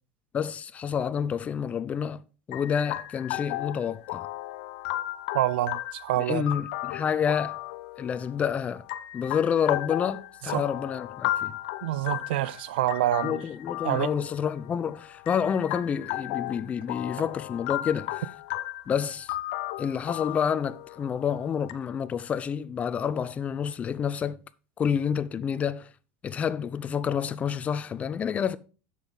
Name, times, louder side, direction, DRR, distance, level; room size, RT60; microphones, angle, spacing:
voice 1, 0.3-2.2 2.5-4.3 6.2-7.6 8.0-8.8 9.1-11.5 13.2-18.2 18.9-19.3 19.8-24.4 24.8-25.9 26.2-28.6, left 7 dB, 25° left, 0.5 m, -29 dB
sound 1, 2.5-21.7, left 15 dB, 65° left, 0.6 m, -35 dB
voice 2, 5.3-6.4 10.5-10.6 11.8-13.4 13.8-14.1, right 15 dB, 85° right, 0.4 m, -26 dB
7.4 x 7.1 x 3.9 m
supercardioid pair, 130°, 5 cm